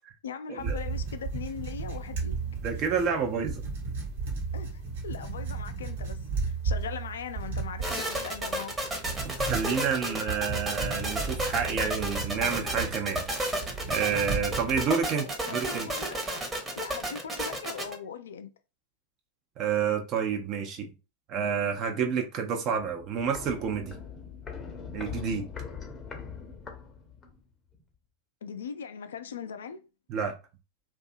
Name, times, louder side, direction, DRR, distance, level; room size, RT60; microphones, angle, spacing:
voice 1, 0.2-2.4 4.5-8.8 15.2-16.4 16.7-18.5 28.4-29.8, left 7 dB, 65° left, 0.3 m, -40 dB
sound 1, 0.6-14.9, right 4 dB, 60° right, 1.0 m, -35 dB
voice 2, 2.6-3.6 9.2-13.2 13.9-15.9 19.6-20.9 21.3-24.0 24.9-25.5 30.1-30.3, right 6 dB, 35° right, 0.5 m, -29 dB
sound 2, 7.8-17.9, right 1 dB, 15° right, 0.8 m, -32 dB
Walk footsteps, 22.8-27.5 27.7-27.8, left 6 dB, 20° left, 0.6 m, -41 dB
2.6 x 2.2 x 2.5 m
figure-of-eight pair, 90°, 0 cm